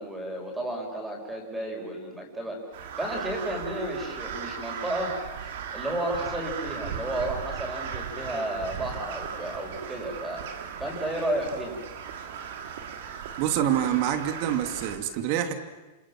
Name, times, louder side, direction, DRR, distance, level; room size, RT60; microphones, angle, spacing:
voice 1, 0.0-2.6 3.0-5.2 5.7-10.4 10.8-11.8, right 1 dB, 5° right, 1 dB, 6.7 m, -32 dB
Crow, 2.7-15.0, right 7 dB, 70° right, 3.3 m, -37 dB
voice 2, 13.4-15.5, right 10 dB, 50° right, 8 dB, 2.7 m, -26 dB
28.0 x 27.0 x 7.6 m, 1.1 s
supercardioid pair, 145°, 0 cm